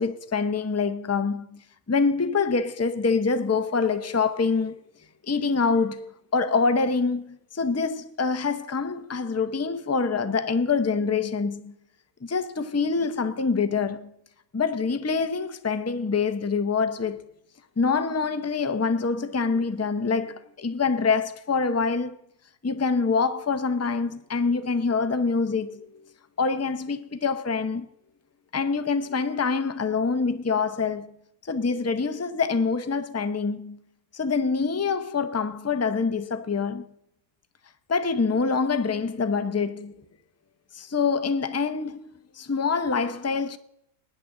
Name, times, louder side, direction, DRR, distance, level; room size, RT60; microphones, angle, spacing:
voice 1, 0.0-1.6 1.9-4.8 5.3-11.7 12.2-14.1 14.5-17.2 17.8-22.2 22.6-25.9 26.4-27.9 28.5-31.1 31.5-33.8 34.1-36.9 37.9-39.9 40.7-42.0 42.3-43.6, left 4 dB, 20° left, 0.4 m, -25 dB
21.0 x 10.0 x 3.8 m
omnidirectional pair, 1.5 m